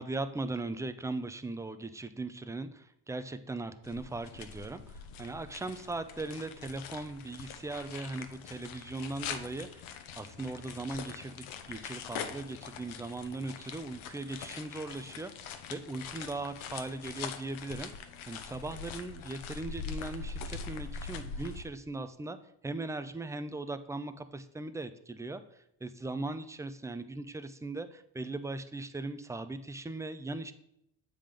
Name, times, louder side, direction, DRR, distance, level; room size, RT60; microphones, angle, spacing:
voice 1, 0.0-17.9 18.3-22.4 22.6-25.4 25.8-30.5, right 2 dB, 5° right, 10 dB, 0.4 m, -39 dB
sound 1, 3.8-21.6, left 6 dB, 85° left, 0.9 m, -43 dB
7.2 x 3.8 x 5.0 m, 0.79 s
cardioid pair, 85°, 48 cm